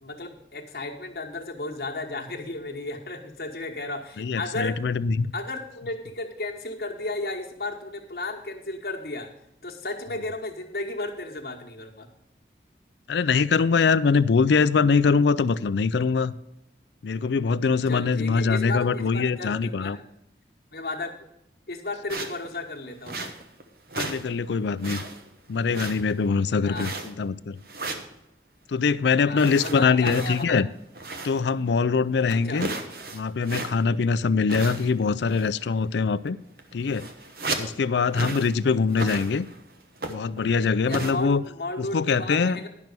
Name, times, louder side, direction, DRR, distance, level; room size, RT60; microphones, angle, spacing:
voice 1, 0.0-4.8 5.3-9.3 9.6-12.1 17.9-20.0 20.7-21.1 21.7-23.3 26.6-26.9 29.2-30.6 32.3-32.6 40.9-42.7, left 2 dB, 60° left, 1.3 m, -34 dB
voice 2, 4.2-5.3 13.1-16.3 17.0-20.0 24.0-25.0 25.5-27.6 28.7-30.7 31.2-32.7 33.1-36.4 36.7-37.1 37.6-39.5 40.1-41.4 41.8-42.6, left 5 dB, 80° left, 0.4 m, -23 dB
sound 1, 22.1-22.5 23.0-23.6 23.9-24.3 24.6-25.3 25.7-26.3 26.7-27.3 27.7-28.1 29.4-31.5 31.8-31.9 32.3-34.0 34.5-35.1 35.3-35.6 36.3-36.4 36.6-37.8 38.1-38.6 38.9-39.6 40.0-40.4 40.9-41.1, right 2 dB, 55° right, 1.1 m, -34 dB
10.5 x 6.1 x 6.7 m
head